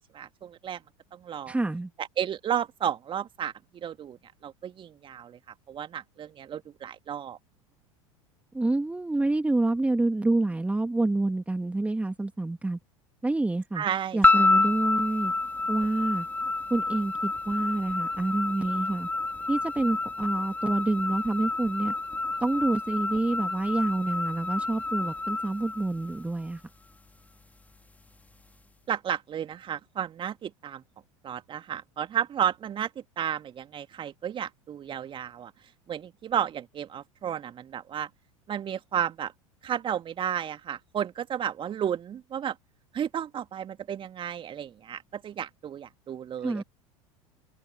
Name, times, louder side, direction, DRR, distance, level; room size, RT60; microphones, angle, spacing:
voice 1, 0.1-0.8 1.1-1.6 2.0-3.5 3.8-4.2 4.4-5.4 5.7-7.4 13.7-14.6 28.9-30.8 31.2-32.9 33.2-35.5 35.9-38.1 38.5-39.3 39.6-42.6 42.9-46.6, right 9 dB, 30° right, 2.2 m, -32 dB
voice 2, 1.5-1.9 8.5-12.8 13.2-13.8 14.1-15.3 15.7-16.3 16.7-19.1 19.5-21.9 22.4-26.6 46.4-46.6, right 2 dB, 5° right, 2.6 m, -27 dB
sound 1, 14.2-26.5, left 3 dB, 10° left, 3.0 m, -28 dB
open air
figure-of-eight pair, 80°, 17 cm